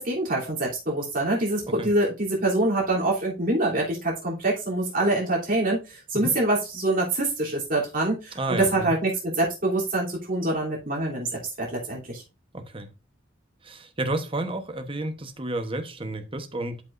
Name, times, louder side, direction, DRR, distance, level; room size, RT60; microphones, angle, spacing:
voice 1, 0.0-11.3 11.6-12.2, right 2 dB, 45° right, 3.2 m, -25 dB
voice 2, 8.3-8.9 12.5-12.9 13.6-16.8, right 2 dB, 25° right, 1.1 m, -31 dB
11.5 x 5.5 x 2.6 m
head